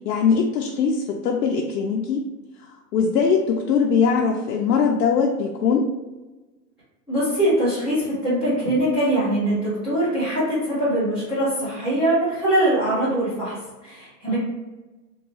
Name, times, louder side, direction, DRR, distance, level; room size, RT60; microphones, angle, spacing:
voice 1, 0.0-2.2 2.9-5.9 14.3-14.4, left 5 dB, 80° left, 0 dB, 0.6 m, -21 dB
voice 2, 7.1-14.4, right 1 dB, ahead, -15 dB, 0.4 m, -22 dB
3.5 x 2.3 x 3.1 m, 1.2 s
hypercardioid pair, 145°, 50 cm